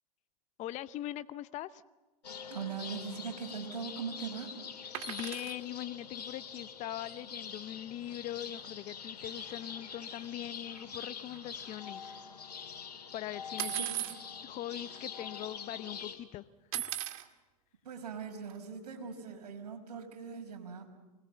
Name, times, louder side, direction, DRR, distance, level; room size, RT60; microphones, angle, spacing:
voice 1, 0.6-1.8 5.1-12.2 13.1-13.9 14.4-16.4 16.7-16.9, left 13 dB, 35° left, 15 dB, 0.7 m, -41 dB
sound 1, 2.2-16.2, left 6 dB, 90° left, 3.4 m, -45 dB
voice 2, 2.5-4.5 13.7-14.0 17.8-20.9, right 6 dB, 80° right, 3 dB, 5.5 m, -41 dB
sound 2, 4.9-5.6 7.8-7.9 8.1-8.3 8.5-8.7 9.4-9.6 10.0-12.2 13.6-14.2 14.9-15.0 15.3-15.8 16.7-17.3 18.5-18.6, right 15 dB, 60° right, 2.0 m, -38 dB
25.5 x 21.0 x 7.9 m, 1.1 s
hypercardioid pair, 105°, 20 cm